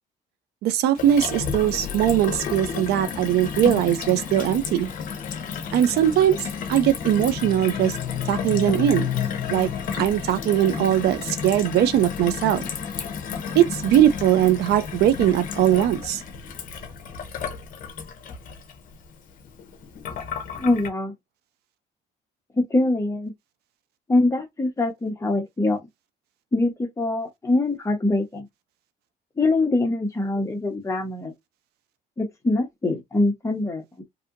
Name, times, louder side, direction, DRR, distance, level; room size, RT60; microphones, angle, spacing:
voice 1, 0.6-4.9 5.7-6.4 6.7-8.0 8.3-9.1 9.5-9.7 10.0-12.6 13.5-16.2, right 11 dB, 75° right, 0.5 m, -20 dB
Gurgling / Water tap faucet / Sink (filling or washing), 1.0-20.9, left 6 dB, 55° left, 0.7 m, -32 dB
sound 1, 7.2-11.0, left 12 dB, 90° left, 0.4 m, -32 dB
voice 2, 20.6-21.1 22.5-23.3 24.1-25.8 26.5-28.5 29.4-31.3 32.2-34.0, left 2 dB, 15° left, 1.0 m, -23 dB
2.7 x 2.5 x 2.5 m
cardioid pair, 110°, 17 cm